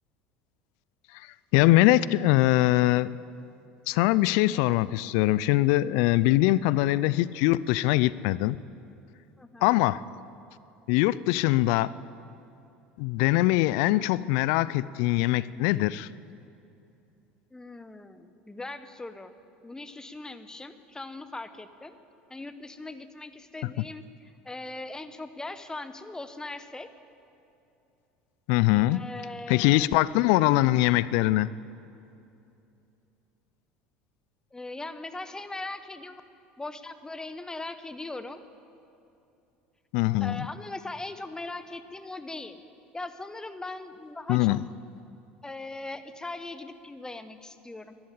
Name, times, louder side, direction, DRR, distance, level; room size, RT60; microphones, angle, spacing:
voice 1, 1.5-3.1 3.9-8.6 9.6-10.0 10.9-11.9 13.0-16.1 23.8-23.9 28.5-29.0 29.5-31.5 39.9-40.5 44.3-44.6, left 17 dB, 65° left, 19 dB, 0.4 m, -22 dB
voice 2, 9.4-9.8 17.5-19.3 19.6-21.9 22.3-26.9 28.9-29.9 34.5-36.2 36.6-38.4 40.2-42.6 42.9-44.6 45.4-48.0, left 2 dB, 10° left, 11 dB, 1.0 m, -40 dB
13.0 x 11.5 x 8.6 m, 2.7 s
hypercardioid pair, 75°, 6 cm